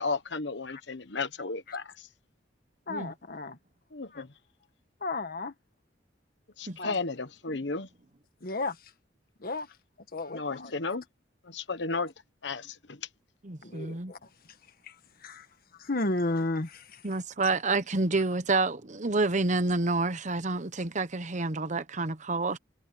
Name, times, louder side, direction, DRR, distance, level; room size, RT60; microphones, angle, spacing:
voice 1, 0.0-2.1 3.9-4.3 6.6-7.9 10.3-11.0 11.4-12.1 12.4-13.1, left 3 dB, 65° left, 1.2 m, -34 dB
voice 2, 2.9-3.6 4.1-4.2 5.0-5.5 6.8-6.9 8.4-8.8 9.4-9.7 10.1-10.7 13.6-14.3 14.9-15.0 15.2-15.5 15.8-17.0, left 2 dB, 50° left, 1.6 m, -33 dB
voice 3, 13.4-14.1 17.0-22.6, right 3 dB, 40° right, 1.0 m, -28 dB
head